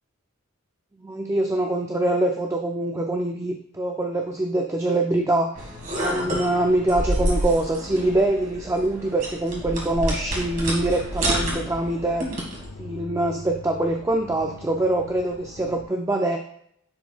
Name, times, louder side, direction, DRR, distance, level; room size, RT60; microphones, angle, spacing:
voice 1, 1.0-5.7 6.0-12.3 12.8-16.4, right 1 dB, 15° right, 3 dB, 0.3 m, -24 dB
sound 1, 5.6-12.7, right 1 dB, 35° right, 1.9 m, -29 dB
sound 2, 9.5-15.8, left 2 dB, 80° left, 0.8 m, -42 dB
10.5 x 4.7 x 2.4 m, 0.71 s
head